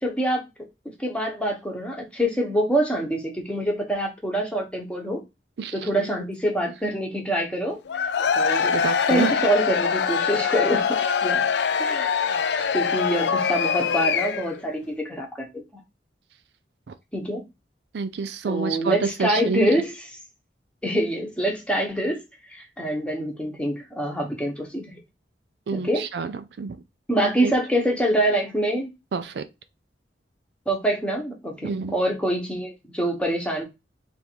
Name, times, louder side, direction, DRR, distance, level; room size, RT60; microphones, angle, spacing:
voice 1, 0.0-0.4 1.0-5.2 5.7-8.0 8.3-8.8 9.1-11.5 11.8-12.2 12.7-15.4 17.1-17.4 18.5-19.9 20.8-22.2 22.5-25.0 25.7-26.0 27.1-28.9 30.7-33.6, right 1 dB, 5° left, 0.9 m, -25 dB
voice 2, 5.6-6.1 8.7-9.4 16.9-17.0 17.9-19.7 25.7-26.8 27.4-27.5 29.1-29.5 31.6-31.9, right 5 dB, 65° right, 0.4 m, -28 dB
Cheering / Crowd, 7.9-14.6, left 6 dB, 65° left, 0.4 m, -23 dB
3.5 x 2.6 x 4.4 m
head